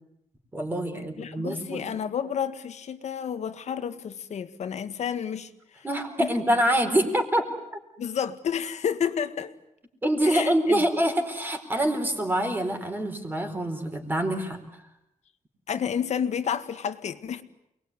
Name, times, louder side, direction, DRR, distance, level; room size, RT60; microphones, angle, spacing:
voice 1, 0.5-1.8 5.8-7.5 10.0-14.6, right 1 dB, 15° right, 4.4 m, -25 dB
voice 2, 1.2-5.9 6.2-6.3 8.0-9.5 10.2-10.9 15.7-17.4, left 8 dB, 60° left, 1.8 m, -30 dB
29.0 x 21.0 x 9.8 m
wide cardioid pair, 160°, 13 cm